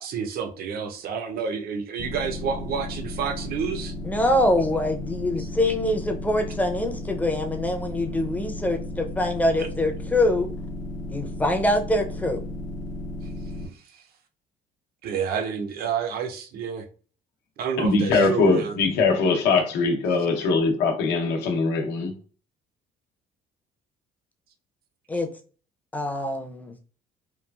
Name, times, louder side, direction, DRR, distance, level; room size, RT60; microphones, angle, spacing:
voice 1, 0.0-3.9 15.0-16.8 17.6-18.7, right 6 dB, 65° right, 0.5 m, -29 dB
sound 1, 2.0-13.7, left 1 dB, 45° left, 0.8 m, -34 dB
voice 2, 4.0-10.5 11.1-12.4 25.1-25.3 25.9-26.8, left 1 dB, 10° left, 0.5 m, -24 dB
voice 3, 17.8-22.1, left 3 dB, 85° left, 0.7 m, -22 dB
3.0 x 2.4 x 2.3 m
cardioid pair, 110°, 17 cm